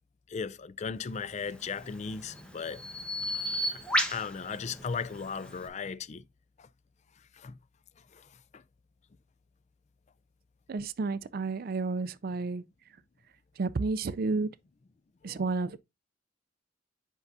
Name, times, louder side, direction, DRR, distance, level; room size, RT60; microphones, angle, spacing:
voice 1, 0.3-2.8 3.3-3.8 4.1-6.2 7.4-7.5 15.2-15.4, left 5 dB, 35° left, 0.4 m, -37 dB
Bird vocalization bird call bird song, 1.5-5.7, equal, 5° left, 1.2 m, -34 dB
voice 2, 10.7-12.6 13.6-14.5 15.2-15.8, right 3 dB, 50° right, 0.4 m, -31 dB
8.1 x 5.5 x 2.6 m
head